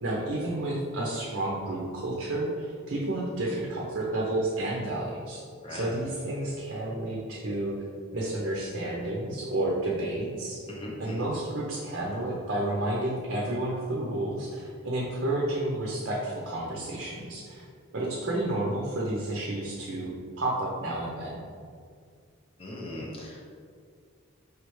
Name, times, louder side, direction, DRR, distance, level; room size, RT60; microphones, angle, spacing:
voice 1, 0.0-5.4 5.7-7.7 8.1-10.6 11.0-17.6 17.9-20.1 20.4-21.4, right 1 dB, 55° right, -4 dB, 0.6 m, -31 dB
voice 2, 10.7-11.3 22.6-23.5, left 1 dB, 25° left, -4 dB, 0.8 m, -39 dB
4.8 x 3.2 x 3.1 m, 2.2 s
head